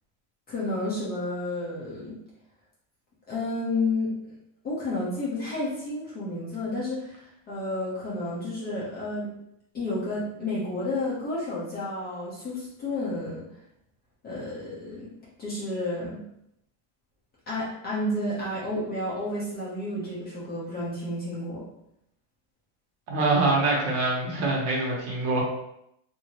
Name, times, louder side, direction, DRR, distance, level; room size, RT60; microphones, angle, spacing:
voice 1, 0.5-2.2 3.3-4.3 4.6-9.3 9.7-13.4 14.2-15.1 15.4-16.2 17.5-21.6, left 2 dB, 20° left, -7 dB, 0.7 m, -31 dB
voice 2, 23.1-25.4, right 2 dB, 55° right, -2 dB, 1.1 m, -24 dB
2.9 x 2.7 x 2.9 m, 0.78 s
supercardioid pair, 160°, 48 cm